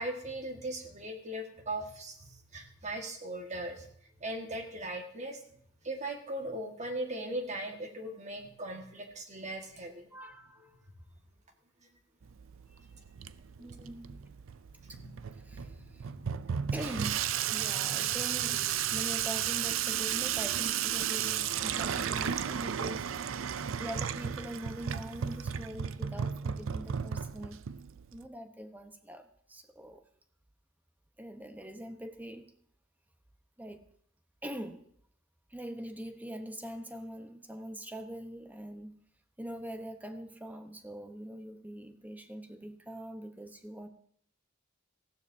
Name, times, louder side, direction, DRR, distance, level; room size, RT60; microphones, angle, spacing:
voice 1, 0.0-3.9 4.2-5.4 5.8-10.1 14.8-15.2 15.6-16.5, right 1 dB, 35° right, 3 dB, 1.7 m, -39 dB
voice 2, 10.1-10.8 12.7-12.9 13.6-14.1 14.9-15.0 15.3-16.1 16.7-23.1 23.8-27.6 28.1-30.0 31.2-32.6 33.6-33.8 34.4-34.8 35.5-38.9 39.4-43.9, equal, 10° right, 7 dB, 0.9 m, -43 dB
Water tap faucet / Sink (filling or washing), 12.2-28.3, right 9 dB, 75° right, 0.5 m, -34 dB
19.5 x 15.0 x 2.7 m, 0.68 s
head